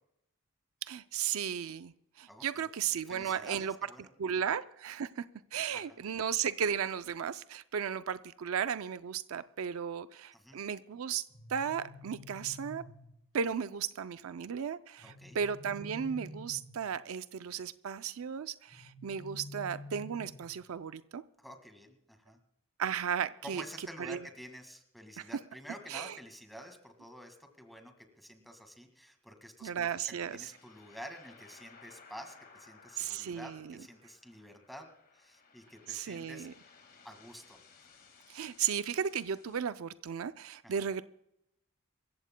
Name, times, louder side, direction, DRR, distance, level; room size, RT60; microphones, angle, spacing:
voice 1, 0.8-3.7 4.2-5.2 5.5-11.2 11.5-12.8 13.3-21.2 22.8-24.2 25.2-25.3 25.9-26.2 29.6-30.5 33.0-33.8 35.9-36.5 38.3-41.0, right 7 dB, 70° right, 12 dB, 0.4 m, -35 dB
voice 2, 2.3-2.7 3.1-4.1 5.7-6.0 10.3-10.6 15.0-15.4 21.4-22.4 23.4-29.9 30.3-34.9 35.1-36.5 37.0-37.6 40.6-40.9, equal, ahead, 5 dB, 1.8 m, -50 dB
sound 1, 11.3-13.3 15.0-17.0 18.7-20.7, left 1 dB, 25° left, 2.3 m, -49 dB
sound 2, 30.2-39.6, left 5 dB, 45° left, 1.9 m, -59 dB
26.5 x 15.0 x 2.2 m, 0.83 s
head